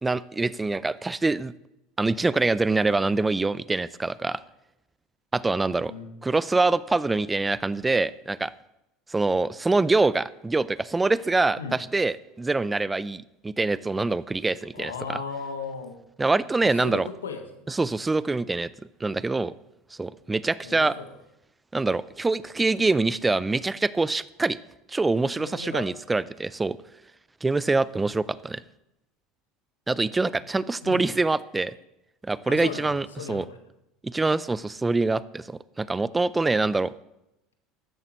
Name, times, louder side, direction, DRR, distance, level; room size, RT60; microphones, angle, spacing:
voice 1, 0.0-1.5 2.0-4.4 5.3-5.9 6.2-8.5 9.1-15.2 16.2-17.1 17.7-18.7 19.0-19.5 20.0-20.9 21.7-24.6 24.9-26.8 27.4-28.6 29.9-31.7 32.2-33.4 34.1-36.9, right 3 dB, 15° right, 18 dB, 0.5 m, -25 dB
voice 2, 14.7-16.0 16.6-17.7 20.6-21.1 25.4-25.9 30.8-31.1 32.5-33.6, left 5 dB, 90° left, 6 dB, 1.4 m, -36 dB
14.5 x 11.0 x 3.1 m, 0.88 s
hypercardioid pair, 80°, 0 cm